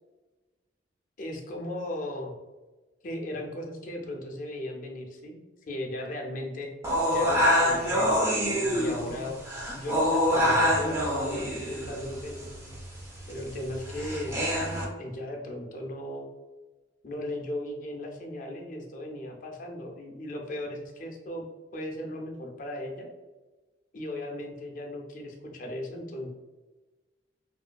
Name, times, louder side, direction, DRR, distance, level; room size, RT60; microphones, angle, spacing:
voice 1, 1.2-2.3 3.0-5.4 5.7-6.7 7.1-9.4 9.7-12.5 13.3-14.3 15.0-16.3 17.0-21.4 21.7-23.1 23.9-26.3, left 1 dB, 45° left, 1 dB, 0.4 m, -37 dB
sound 1, 6.8-14.9, equal, 15° right, 0.4 m, -26 dB
2.6 x 2.4 x 2.2 m, 1.2 s
head